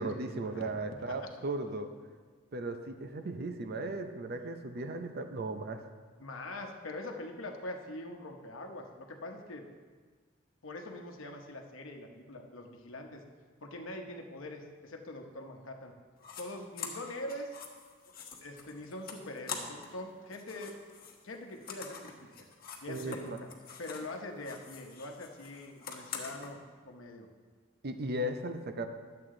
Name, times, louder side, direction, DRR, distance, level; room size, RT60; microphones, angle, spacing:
voice 1, 0.0-1.9 2.5-5.8 22.9-23.4 27.8-28.9, right 2 dB, 50° right, 7 dB, 0.6 m, -36 dB
voice 2, 6.2-9.7 10.6-13.2 13.6-15.9 16.4-17.5 18.4-20.7 21.2-22.5 22.8-23.5 23.8-26.6 26.8-27.3, left 1 dB, 75° left, 3 dB, 1.0 m, -43 dB
sound 1, 16.2-16.4 16.8-20.0 20.3-24.1 24.4-26.5, left 6 dB, 50° left, 1.1 m, -45 dB
11.0 x 7.7 x 3.8 m, 1.5 s
head